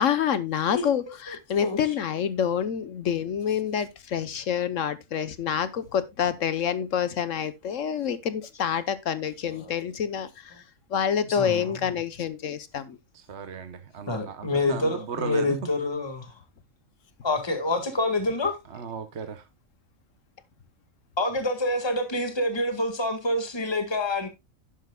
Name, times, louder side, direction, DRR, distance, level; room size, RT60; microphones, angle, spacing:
voice 1, 0.0-10.6 10.9-13.0, left 8 dB, 70° left, 1.3 m, -27 dB
voice 2, 1.6-1.9 9.5-9.7 11.2-11.8 14.1-16.3 17.2-18.6 21.2-24.3, left 2 dB, 20° left, 1.8 m, -27 dB
voice 3, 13.1-15.6 18.7-19.4, right 6 dB, 55° right, 1.1 m, -36 dB
11.0 x 10.5 x 2.3 m
omnidirectional pair, 1.4 m